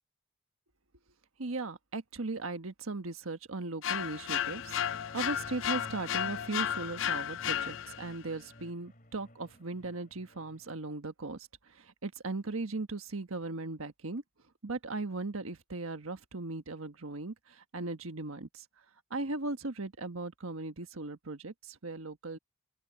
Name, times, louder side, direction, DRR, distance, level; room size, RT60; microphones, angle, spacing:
voice 1, 1.4-14.2 14.6-18.6 19.1-22.4, right 3 dB, 90° right, 1.5 m, -38 dB
sound 1, 3.8-8.2, left 10 dB, 65° left, 0.4 m, -33 dB
sound 2, 4.2-10.8, left 1 dB, 40° left, 3.8 m, -52 dB
open air
head